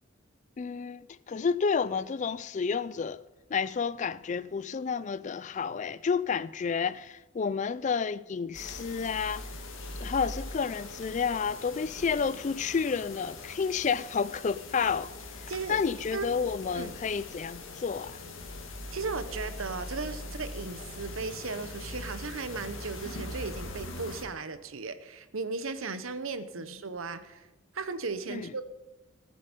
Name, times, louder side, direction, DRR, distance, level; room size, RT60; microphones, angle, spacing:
voice 1, 0.6-3.2 3.5-9.5 10.0-15.1 15.4-18.2 28.3-28.5, left 6 dB, 35° left, 0.3 m, -30 dB
sound 1, 8.5-24.2, left 2 dB, 75° left, 2.1 m, -41 dB
voice 2, 18.9-27.5 27.7-28.6, right 4 dB, 85° right, 0.9 m, -36 dB
19.0 x 7.6 x 5.2 m
head